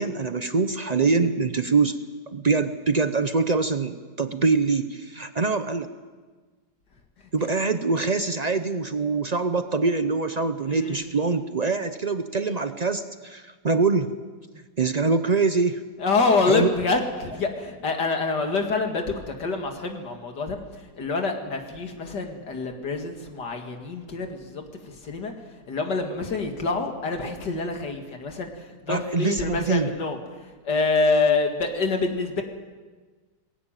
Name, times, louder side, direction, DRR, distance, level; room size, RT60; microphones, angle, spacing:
voice 1, 0.0-2.0 2.3-5.9 7.3-14.1 14.8-15.8 16.4-16.7 28.9-29.9, right 4 dB, 60° right, 10 dB, 0.4 m, -24 dB
voice 2, 10.7-11.0 16.0-20.6 21.0-25.3 25.7-28.5 28.8-30.2 30.6-32.4, left 3 dB, 70° left, 4 dB, 2.7 m, -26 dB
21.0 x 16.5 x 9.0 m, 1.4 s
omnidirectional pair, 1.9 m